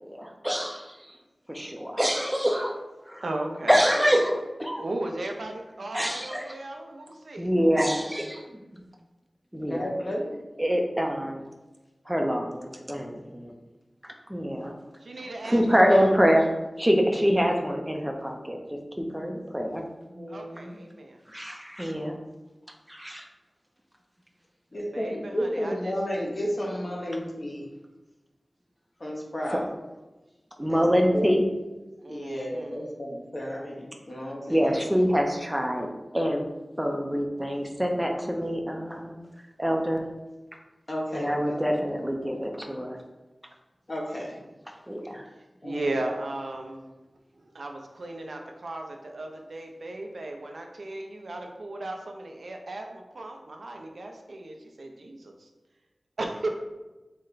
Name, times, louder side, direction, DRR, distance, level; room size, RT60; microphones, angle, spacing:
voice 1, 0.0-1.2 1.5-2.7 3.1-3.2 3.7-4.8 5.9-6.5 7.4-8.4 8.7-8.8 9.5-9.9 10.6-11.4 12.1-13.5 14.0-14.7 15.4-16.5 16.8-18.6 19.0-19.8 21.3-22.1 22.9-23.2 30.6-31.4 34.5-35.9 36.1-36.5 36.8-39.2 39.6-40.0 41.1-43.0 44.9-45.3, equal, 10° right, 2 dB, 0.5 m, -25 dB
voice 2, 3.2-3.8 4.8-7.5 15.0-16.1 20.3-21.2 24.9-25.9 32.0-32.9 45.6-46.8 47.5-55.5 56.2-56.5, right 2 dB, 80° right, 3 dB, 0.5 m, -36 dB
voice 3, 9.7-10.4 20.1-20.8 24.7-27.6 29.0-29.6 30.7-30.8 31.1-31.3 32.1-34.8 40.9-41.8 43.9-44.4 45.6-45.8, equal, 45° left, -2 dB, 0.9 m, -32 dB
4.2 x 2.1 x 3.8 m, 1.1 s
wide cardioid pair, 65°, 0 cm